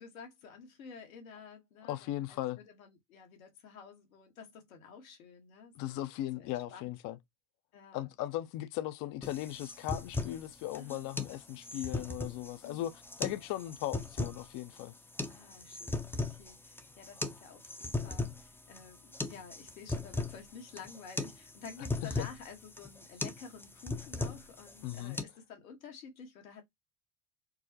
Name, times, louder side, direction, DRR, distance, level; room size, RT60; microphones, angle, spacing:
voice 1, 0.0-6.0 6.4-6.9 7.7-8.1 10.7-11.1 12.6-12.9 15.3-26.6, left 6 dB, 90° left, 1.4 m, -51 dB
voice 2, 1.9-2.6 5.8-7.2 7.9-12.9 13.2-14.9 22.0-22.3 24.8-25.2, left 14 dB, 50° left, 0.6 m, -38 dB
sound 1, 9.2-25.2, left 2 dB, 5° left, 0.5 m, -38 dB
4.5 x 2.1 x 2.8 m
hypercardioid pair, 85°, 41 cm